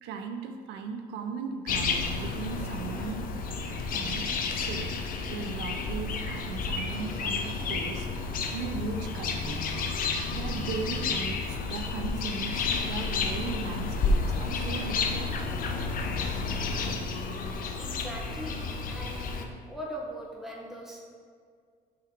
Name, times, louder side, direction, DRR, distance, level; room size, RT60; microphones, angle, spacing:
voice 1, 0.0-3.3 3.9-5.0 5.3-9.6 10.3-15.5, right 5 dB, 80° right, 6 dB, 0.5 m, -37 dB
sound 1, 1.7-19.5, left 4 dB, 55° left, 0.6 m, -31 dB
voice 2, 17.8-21.1, equal, ahead, -3 dB, 1.2 m, -40 dB
6.0 x 3.8 x 4.5 m, 2.1 s
cardioid pair, 110°, 17 cm